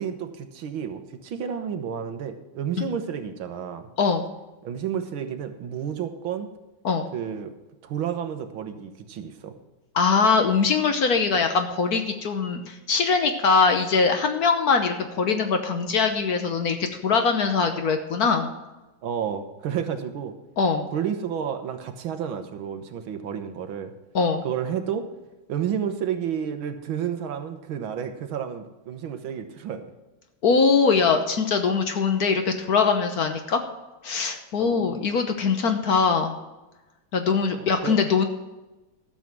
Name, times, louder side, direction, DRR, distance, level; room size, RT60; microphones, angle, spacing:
voice 1, 0.0-3.9 4.6-6.5 7.1-7.5 7.8-9.5 19.0-20.3 20.9-23.9 24.4-25.1 25.5-29.8 34.6-35.0 37.8-38.0, right 8 dB, 85° right, 7 dB, 1.9 m, -31 dB
voice 2, 9.9-18.5 20.6-20.9 24.1-24.4 30.4-33.6 34.0-36.4 37.1-38.2, left 5 dB, 55° left, 6 dB, 1.3 m, -22 dB
13.0 x 7.0 x 6.0 m, 1.1 s
omnidirectional pair, 2.2 m